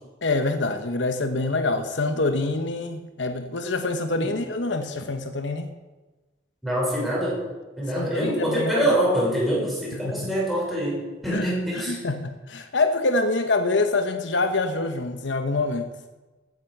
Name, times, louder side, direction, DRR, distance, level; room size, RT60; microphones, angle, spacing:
voice 1, 0.2-5.7 8.0-8.9 10.0-10.3 11.3-11.5 11.8-15.9, left 2 dB, 75° left, 8 dB, 1.0 m, -25 dB
voice 2, 6.6-7.4 7.8-12.0, right 1 dB, ahead, -5 dB, 5.9 m, -25 dB
15.5 x 9.5 x 6.7 m, 1.2 s
head